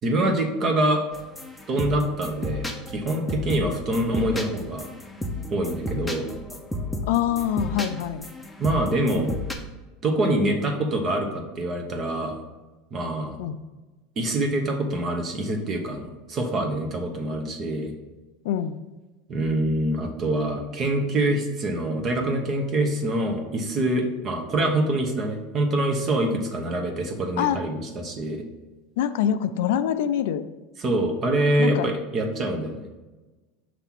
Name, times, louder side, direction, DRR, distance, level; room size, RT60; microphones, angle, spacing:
voice 1, 0.0-1.0 1.7-4.8 5.5-6.3 8.6-9.3 10.0-12.4 12.9-13.4 14.2-17.9 19.3-28.4 30.8-32.9, right 1 dB, 35° right, 3 dB, 1.2 m, -25 dB
sound 1, 1.1-9.5, left 1 dB, 5° left, 0.8 m, -33 dB
voice 2, 7.1-8.3 13.4-13.6 18.4-18.8 27.4-27.6 29.0-30.4 31.6-31.9, left 10 dB, 80° left, 11 dB, 0.4 m, -25 dB
6.0 x 3.3 x 5.9 m, 1.2 s
supercardioid pair, 115°, 0 cm